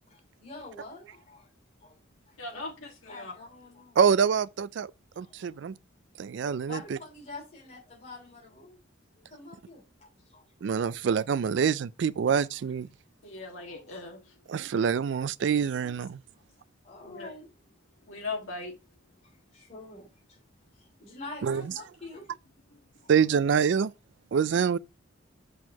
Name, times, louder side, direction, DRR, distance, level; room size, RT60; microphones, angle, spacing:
voice 1, 0.1-1.5 1.8-2.0 2.3-2.6 3.1-4.0 5.1-5.4 6.7-8.8 9.2-10.4 12.3-12.4 13.3-14.0 16.3-16.4 16.8-17.5 19.2-20.4 20.6-22.4 23.0-23.1, left 2 dB, 35° left, 2.8 m, -47 dB
voice 2, 2.4-3.3 13.2-14.2 17.0-17.3 18.1-18.7, left 3 dB, 75° left, 1.7 m, -38 dB
voice 3, 4.0-4.9 5.2-5.7 6.2-6.8 10.6-12.9 14.5-16.2 21.4-21.6 23.1-23.9 24.3-24.8, right 7 dB, 60° right, 0.3 m, -25 dB
6.3 x 6.2 x 2.8 m
head